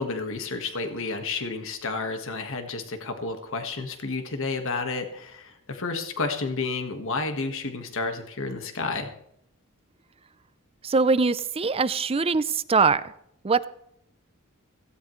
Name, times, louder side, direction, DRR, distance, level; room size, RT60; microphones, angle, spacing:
voice 1, 0.0-9.1, left 3 dB, 60° left, 6 dB, 1.6 m, -31 dB
voice 2, 10.8-13.1 13.4-13.7, right 4 dB, 25° right, 15 dB, 0.5 m, -22 dB
17.0 x 16.0 x 3.2 m, 0.75 s
head